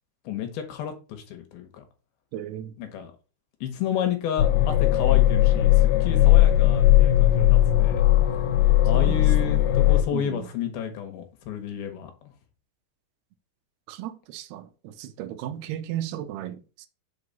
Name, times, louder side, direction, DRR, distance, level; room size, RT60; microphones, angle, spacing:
voice 1, 0.3-1.8 2.8-3.1 3.6-8.1 8.8-12.3, left 9 dB, 75° left, 2.9 m, -31 dB
voice 2, 2.3-2.7 8.9-9.6 10.1-10.5 13.9-16.9, right 12 dB, 80° right, 2.8 m, -35 dB
sound 1, 4.4-10.0, left 14 dB, 90° left, 2.8 m, -18 dB
6.3 x 4.8 x 5.3 m
omnidirectional pair, 4.6 m